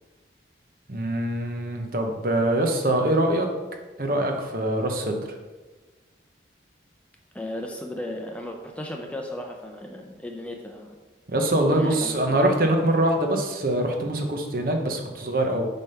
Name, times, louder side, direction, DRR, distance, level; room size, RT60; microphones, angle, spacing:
voice 1, 0.9-3.5 4.0-5.2 11.3-15.7, right 1 dB, 50° right, 3 dB, 0.9 m, -23 dB
voice 2, 7.3-11.0 11.6-12.4, left 1 dB, 5° left, 1 dB, 0.6 m, -35 dB
8.1 x 3.4 x 5.6 m, 1.3 s
head